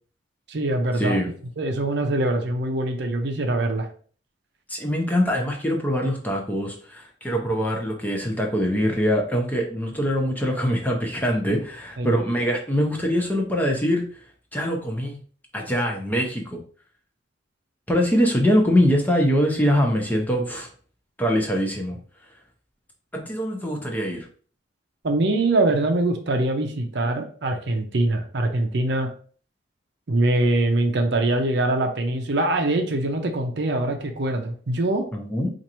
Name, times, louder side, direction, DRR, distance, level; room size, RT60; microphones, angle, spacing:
voice 1, 0.5-1.2 1.6-3.9 12.0-12.2 25.0-29.1 30.1-35.1, right 2 dB, 60° right, 4 dB, 0.6 m, -23 dB
voice 2, 4.7-14.0 14.5-15.2 15.5-16.6 17.9-20.7 21.2-22.0 23.1-24.3 35.1-35.5, equal, 10° left, 1 dB, 0.6 m, -23 dB
4.3 x 2.5 x 2.9 m, 0.43 s
head